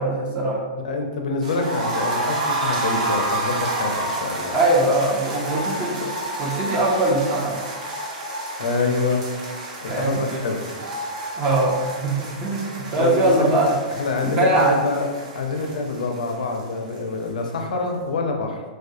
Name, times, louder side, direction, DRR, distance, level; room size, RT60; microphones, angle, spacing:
voice 1, 0.0-0.6 4.5-6.1 6.4-7.6 9.9-10.2 11.4-12.1 12.4-13.7 14.4-14.8, right 2 dB, 30° right, -3 dB, 0.5 m, -21 dB
voice 2, 0.8-4.5 8.6-9.2 9.8-10.7 13.0-13.6 13.9-15.1 15.3-18.6, left 3 dB, 80° left, 3 dB, 0.4 m, -26 dB
sound 1, 1.4-17.3 17.5-17.6 17.9-18.0, right 2 dB, 65° right, 0.7 m, -30 dB
2.4 x 2.2 x 2.6 m, 1.4 s
hypercardioid pair, 130°, 4 cm